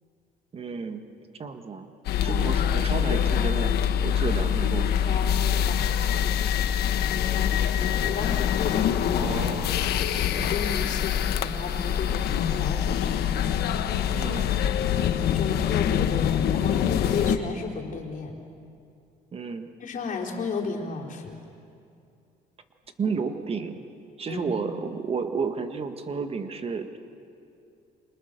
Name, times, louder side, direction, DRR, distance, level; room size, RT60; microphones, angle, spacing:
voice 1, 0.5-1.1 1.3-1.9 2.2-3.7 4.0-5.0 9.1-9.7 14.1-14.5 19.3-19.7 23.0-23.8 24.2-27.0, right 5 dB, 35° right, 7 dB, 1.7 m, -32 dB
sound 1, 2.0-17.4, left 9 dB, 70° left, 1.3 m, -25 dB
voice 2, 4.7-6.1 7.1-9.2 10.2-13.8 14.9-18.3 19.8-21.4 24.3-24.5, left 4 dB, 50° left, 0 dB, 4.2 m, -34 dB
28.5 x 26.0 x 6.8 m, 2.5 s
cardioid pair, 110°, 17 cm